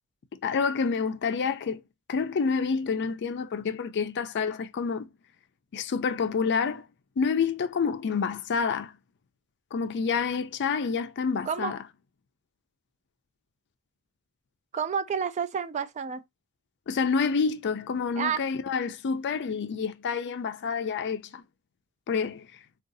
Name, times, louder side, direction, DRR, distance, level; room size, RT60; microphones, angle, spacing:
voice 1, 0.3-1.8 2.1-5.1 5.7-6.9 7.2-8.9 9.7-11.8 16.9-21.4 22.1-22.5, left 5 dB, 50° left, 0.4 m, -28 dB
voice 2, 11.5-11.8 14.7-16.2 18.2-18.4, right 7 dB, 30° right, 0.3 m, -29 dB
3.7 x 2.3 x 2.6 m
head